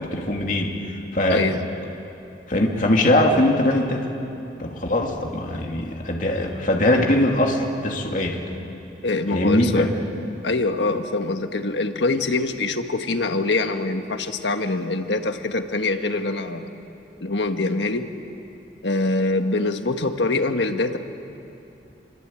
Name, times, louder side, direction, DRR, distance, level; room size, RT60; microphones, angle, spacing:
voice 1, 0.0-1.5 2.5-4.1 4.6-8.4 9.3-9.8, left 1 dB, 45° left, 1 dB, 2.6 m, -21 dB
voice 2, 1.3-1.6 9.0-9.9 10.4-16.7 17.2-18.1 18.8-21.0, left 2 dB, 75° left, 7 dB, 1.5 m, -24 dB
27.5 x 24.5 x 8.9 m, 2.8 s
head